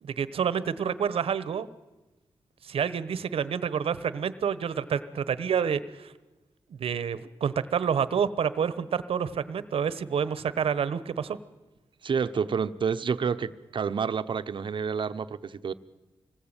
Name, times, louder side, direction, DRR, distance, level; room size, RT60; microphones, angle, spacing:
voice 1, 0.0-1.7 2.6-6.1 6.7-11.4, right 7 dB, 90° right, 15 dB, 1.2 m, -28 dB
voice 2, 12.0-15.7, right 6 dB, 60° right, 11 dB, 1.0 m, -29 dB
25.5 x 20.0 x 9.0 m, 1.1 s
wide cardioid pair, 115°, 9 cm